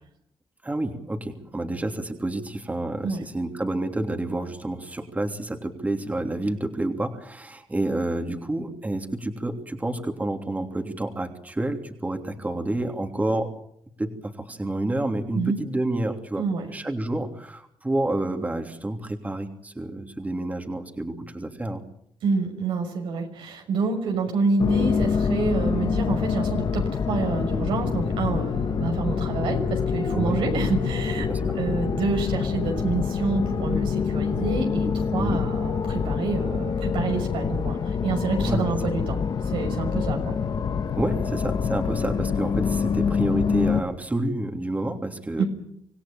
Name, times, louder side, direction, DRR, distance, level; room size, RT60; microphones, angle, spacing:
voice 1, 0.6-13.5 14.0-16.4 16.7-21.8 30.1-30.4 31.3-31.6 35.1-35.4 38.4-38.7 41.0-45.4, right 1 dB, 20° right, 4 dB, 3.2 m, -29 dB
voice 2, 16.4-16.7 22.2-31.3 31.5-39.2 39.4-40.4 45.4-45.5, right 4 dB, 85° right, 3 dB, 6.1 m, -28 dB
sound 1, 24.6-43.8, left 6 dB, 55° left, 1.7 m, -26 dB
26.5 x 16.5 x 8.9 m, 0.72 s
cardioid pair, 80°, 9 cm